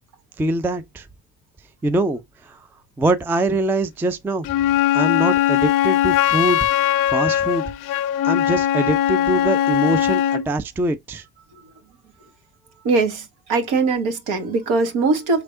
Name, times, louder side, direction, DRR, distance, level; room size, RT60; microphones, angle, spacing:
voice 1, 0.4-1.1 1.8-2.6 3.0-4.5 4.9-6.7 7.1-7.6 8.2-11.2, right 2 dB, 5° right, 0.4 m, -23 dB
Wind instrument woodwind instrument, 4.4-10.5, left 12 dB, 45° left, 0.5 m, -20 dB
voice 2, 12.8-15.4, right 3 dB, 55° right, 1.5 m, -21 dB
5.7 x 3.3 x 2.6 m
figure-of-eight pair, 55°, 46 cm